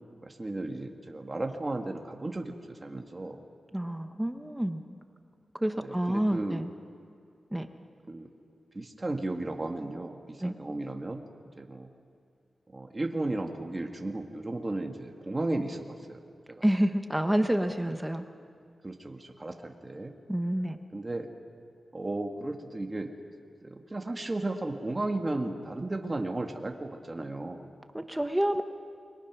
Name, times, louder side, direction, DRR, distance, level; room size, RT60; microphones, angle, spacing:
voice 1, 0.2-3.4 5.8-6.6 8.1-8.3 8.7-11.2 11.6-11.9 12.7-16.2 16.5-16.6 18.8-20.1 20.9-21.3 21.9-23.1 23.6-27.7, right 2 dB, 25° right, 3 dB, 1.6 m, -34 dB
voice 2, 3.7-4.8 5.5-6.7 7.5-7.7 10.4-10.5 16.6-18.2 20.3-20.8 27.9-28.6, right 1 dB, 10° right, 7 dB, 1.0 m, -28 dB
28.5 x 22.5 x 6.1 m, 2.4 s
wide cardioid pair, 115°, 0 cm